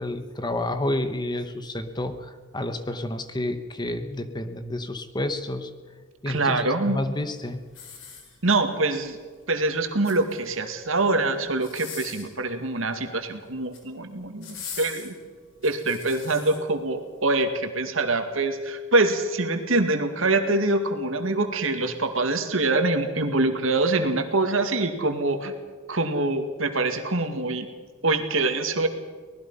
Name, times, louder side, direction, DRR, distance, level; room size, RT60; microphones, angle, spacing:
voice 1, 0.0-5.7 6.2-7.6, left 1 dB, 20° left, 9 dB, 1.2 m, -30 dB
voice 2, 6.3-7.0 8.4-9.2 9.5-15.1 15.6-25.5 25.9-27.7 28.0-28.9, right 2 dB, 80° right, 6 dB, 2.2 m, -24 dB
sound 1, 7.7-8.7 9.8-10.6 11.5-12.4 13.5-13.9 14.4-16.6 17.2-17.3, left 6 dB, 70° left, 4.5 m, -41 dB
24.5 x 19.5 x 5.6 m, 1.5 s
head